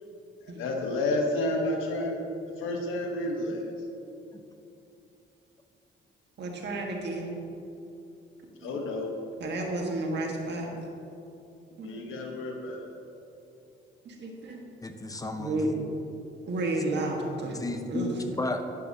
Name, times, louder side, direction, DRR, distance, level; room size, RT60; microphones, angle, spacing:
voice 1, 0.4-2.2 2.6-3.6 8.6-9.1 11.8-12.9, left 2 dB, 90° left, 2 dB, 1.3 m, -30 dB
voice 2, 6.4-7.3 8.6-8.8 9.4-10.7 11.8-11.9 14.0-14.6 15.4-15.7 16.5-17.6 17.9-18.1, right 2 dB, 60° right, 0 dB, 1.7 m, -31 dB
voice 3, 14.8-15.6 17.5-18.6, left 2 dB, 15° left, 7 dB, 0.7 m, -33 dB
10.0 x 9.9 x 2.9 m, 2.8 s
cardioid pair, 90°, 20 cm